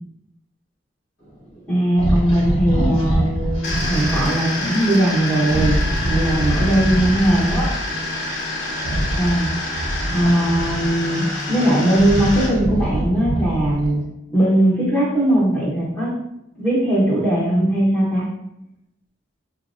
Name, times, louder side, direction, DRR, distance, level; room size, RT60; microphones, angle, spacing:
voice 1, 1.7-8.0 9.2-9.5 10.1-14.0 14.3-16.1 16.6-18.3, right 1 dB, 5° left, -7 dB, 0.7 m, -19 dB
sound 1, 2.0-4.3 5.4-7.8 8.8-11.1 11.6-14.0, equal, 80° left, 0.9 m, -24 dB
sound 2, 3.6-12.5, left 1 dB, 55° left, 1.0 m, -27 dB
3.8 x 2.0 x 2.5 m, 0.83 s
head